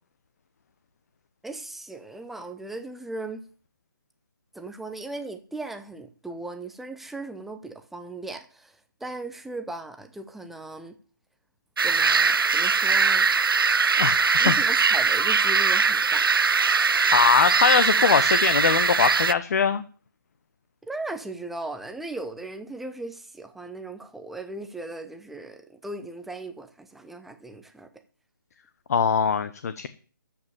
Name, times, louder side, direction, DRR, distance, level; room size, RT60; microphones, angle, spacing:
voice 1, 1.4-3.4 4.5-11.0 11.8-13.3 14.4-16.3 20.8-28.0, right 2 dB, ahead, 0.7 m, -37 dB
sound 1, 11.8-19.3, right 5 dB, 75° right, 0.6 m, -21 dB
voice 2, 14.0-14.5 17.1-19.8 28.9-29.9, left 6 dB, 45° left, 0.9 m, -22 dB
13.0 x 5.3 x 8.7 m
figure-of-eight pair, 155°, 12 cm